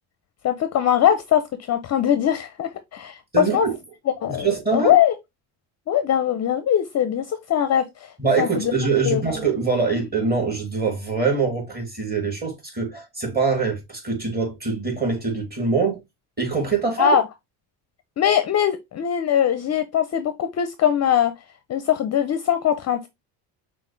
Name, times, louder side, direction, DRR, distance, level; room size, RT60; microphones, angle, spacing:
voice 1, 0.4-1.4 1.7-3.7 4.2-5.1 5.9-8.1 8.4-9.2 17.0-17.2 18.2-21.3 21.7-23.1, left 9 dB, 35° left, 0.5 m, -21 dB
voice 2, 3.3-3.8 4.3-4.9 8.2-16.0 16.4-17.2, right 4 dB, 20° right, 2.3 m, -23 dB
5.9 x 2.5 x 3.2 m
cardioid pair, 105°, 44 cm